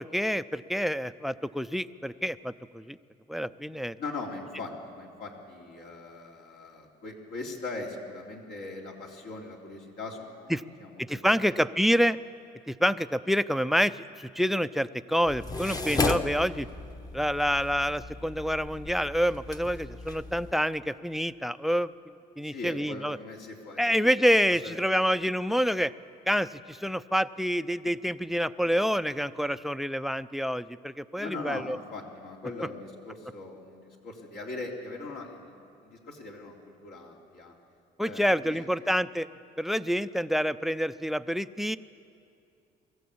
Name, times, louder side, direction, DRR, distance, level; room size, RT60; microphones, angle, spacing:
voice 1, 0.0-3.0 3.3-4.0 10.5-10.6 11.0-12.2 12.7-16.7 17.1-21.9 22.4-23.2 23.8-25.9 26.3-31.8 38.0-39.3 39.6-41.8, equal, ahead, 15 dB, 0.4 m, -27 dB
voice 2, 4.0-11.6 22.4-23.8 24.5-24.8 31.2-35.5 35.8-36.6 36.8-37.5 38.0-38.7, left 3 dB, 70° left, -1 dB, 3.3 m, -40 dB
sound 1, 15.3-20.5, left 3 dB, 20° left, 1.0 m, -34 dB
23.0 x 14.0 x 8.6 m, 2.5 s
cardioid pair, 110°, 17 cm